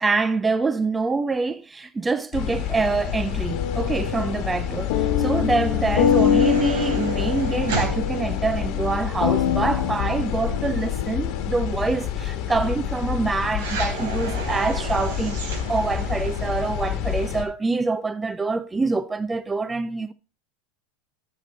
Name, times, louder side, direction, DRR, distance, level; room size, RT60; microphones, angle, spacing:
voice 1, 0.0-20.1, right 3 dB, 10° right, 0.3 m, -25 dB
sound 1, 2.3-17.5, left 9 dB, 45° left, 1.3 m, -29 dB
sound 2, 3.5-11.8, left 8 dB, 65° left, 0.9 m, -25 dB
sound 3, 5.1-9.6 13.6-16.5, right 4 dB, 75° right, 3.4 m, -34 dB
10.5 x 6.7 x 4.0 m
supercardioid pair, 155°, 0 cm